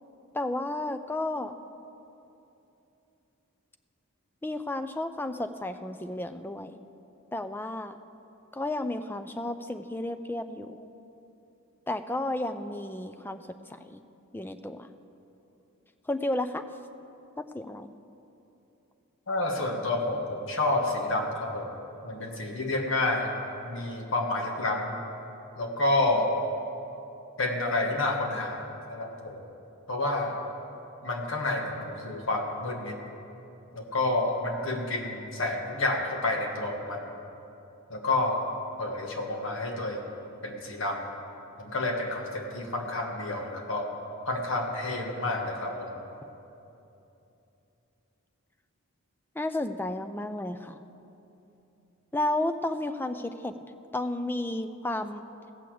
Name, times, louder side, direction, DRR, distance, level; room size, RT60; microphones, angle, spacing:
voice 1, 0.3-1.6 4.4-6.8 7.3-8.0 8.5-10.9 11.9-13.4 13.7-14.0 14.3-14.9 16.1-16.6 17.4-17.9 49.4-50.8 52.1-53.6 53.9-55.2, left 1 dB, 10° left, 9 dB, 0.4 m, -32 dB
voice 2, 19.3-21.7 22.0-23.3 23.6-24.9 25.6-26.3 27.4-29.4 29.9-30.4 31.0-33.0 33.7-37.1 37.9-38.4 38.8-40.1 40.4-41.0 41.6-43.9 44.3-45.9, left 2 dB, 60° left, 1 dB, 1.5 m, -29 dB
16.0 x 6.7 x 7.7 m, 2.9 s
head